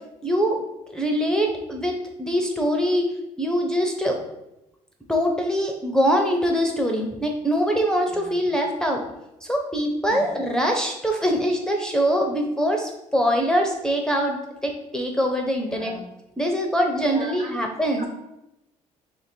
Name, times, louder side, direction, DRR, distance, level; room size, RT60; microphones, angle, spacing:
voice 1, 0.2-0.6 0.9-3.1 3.4-4.2 5.1-9.0 9.4-15.9 16.4-18.1, equal, 5° left, 2 dB, 0.5 m, -23 dB
voice 2, 8.1-8.5 10.1-10.4 15.7-16.0 17.0-17.6 18.0-18.1, right 2 dB, 50° right, 0 dB, 1.0 m, -39 dB
2.9 x 2.5 x 4.3 m, 0.90 s
supercardioid pair, 70°, 14 cm